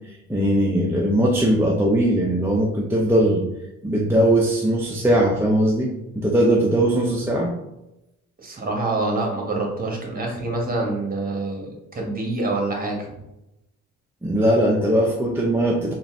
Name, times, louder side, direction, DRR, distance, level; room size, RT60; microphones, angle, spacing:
voice 1, 0.3-3.4 3.8-7.5 14.2-15.9, right 1 dB, 10° right, -2 dB, 0.5 m, -20 dB
voice 2, 8.4-13.1, right 2 dB, 30° right, 0 dB, 1.3 m, -26 dB
3.9 x 2.4 x 3.5 m, 0.89 s
cardioid pair, 90°, 30 cm